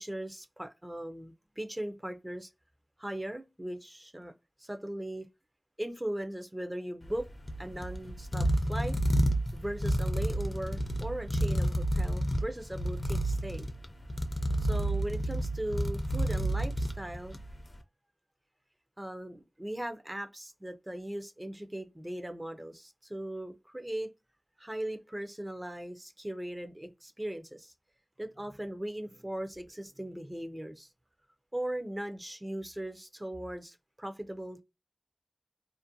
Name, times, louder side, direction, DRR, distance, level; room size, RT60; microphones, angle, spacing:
voice 1, 0.0-2.5 3.0-4.3 4.6-5.3 5.8-7.3 7.6-9.0 9.5-13.7 14.6-17.4 19.0-24.1 24.6-27.7 28.2-30.9 31.5-34.6, right 1 dB, 20° right, 0.4 m, -39 dB
sound 1, 7.0-17.6, right 1 dB, 40° left, 0.4 m, -30 dB
2.5 x 2.1 x 2.6 m
wide cardioid pair, 55°, 0 cm